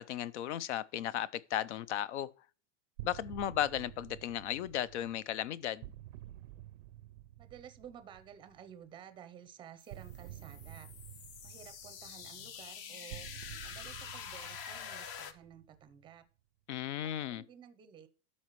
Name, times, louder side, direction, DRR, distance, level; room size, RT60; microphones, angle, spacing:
voice 1, 0.0-2.3 3.0-5.9 16.7-17.4, left 11 dB, 70° left, 0.6 m, -35 dB
sound 1, 3.0-8.7 9.9-16.2, right 14 dB, 60° right, 0.4 m, -51 dB
voice 2, 7.4-10.9 11.4-13.3 13.6-16.3 17.0-18.1, right 9 dB, 15° right, 0.6 m, -53 dB
sound 2, 9.8-15.3, left 8 dB, 30° left, 0.5 m, -46 dB
12.5 x 4.2 x 3.1 m
supercardioid pair, 150°, 35 cm